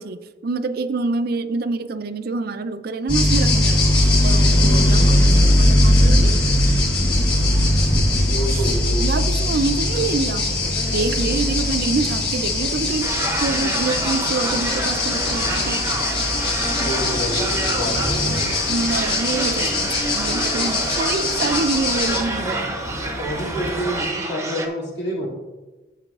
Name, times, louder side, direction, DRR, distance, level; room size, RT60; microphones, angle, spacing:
voice 1, 0.0-6.3 8.5-8.7 9.0-10.5 10.9-13.1 13.4-15.9 18.7-22.7, right 3 dB, 50° right, 10 dB, 0.4 m, -26 dB
sound 1, 3.1-22.2, left 1 dB, 25° left, 2.8 m, -20 dB
sound 2, 7.0-24.1, equal, 45° left, 1.3 m, -33 dB
voice 2, 8.3-9.1 16.7-18.5 22.4-22.6 23.2-25.3, equal, 60° left, -4 dB, 2.5 m, -28 dB
sound 3, 13.0-24.7, right 2 dB, 15° right, 0.7 m, -28 dB
11.5 x 7.3 x 2.4 m, 1.2 s
head